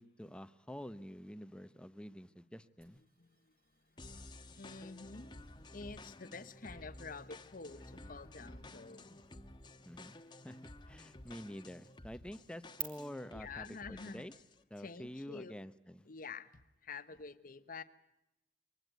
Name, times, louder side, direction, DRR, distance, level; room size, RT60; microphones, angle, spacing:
voice 1, 0.0-3.0 9.8-10.2 10.4-14.3 14.7-16.1, equal, 5° left, 13 dB, 0.9 m, -48 dB
sound 1, 2.8-12.8, right 7 dB, 60° right, 4.3 m, -55 dB
voice 2, 4.0-5.4 5.7-9.1 13.2-14.2 14.8-15.5 16.1-16.5 16.8-17.8, left 4 dB, 55° left, 11 dB, 1.1 m, -48 dB
sound 2, 4.0-14.6, left 2 dB, 25° left, 1.2 m, -53 dB
24.5 x 19.5 x 9.2 m, 0.90 s
head